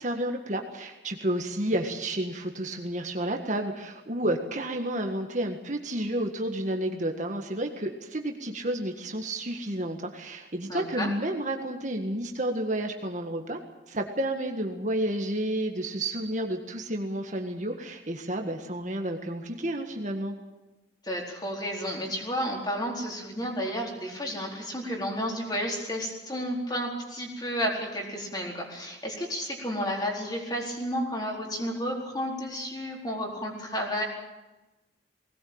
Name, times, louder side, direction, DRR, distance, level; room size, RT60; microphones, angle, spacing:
voice 1, 0.0-13.6 13.9-20.3, right 1 dB, 40° right, 4 dB, 1.8 m, -31 dB
voice 2, 10.7-11.1 21.0-34.0, equal, 20° left, -1 dB, 4.4 m, -32 dB
20.0 x 18.5 x 8.8 m, 1.1 s
head